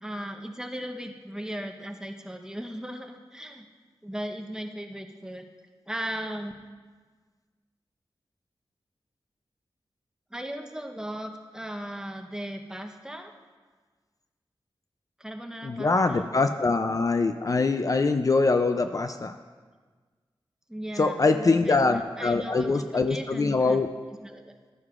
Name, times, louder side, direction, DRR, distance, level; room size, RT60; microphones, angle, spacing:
voice 1, 0.0-3.7 4.0-5.5 5.9-6.5 10.3-13.3 15.2-16.3 20.7-23.8 24.2-24.6, equal, 5° right, 3 dB, 0.9 m, -37 dB
voice 2, 15.6-19.4 21.0-23.9, left 3 dB, 40° left, 7 dB, 0.4 m, -23 dB
12.0 x 9.5 x 2.5 m, 1.4 s
wide cardioid pair, 60°, 9 cm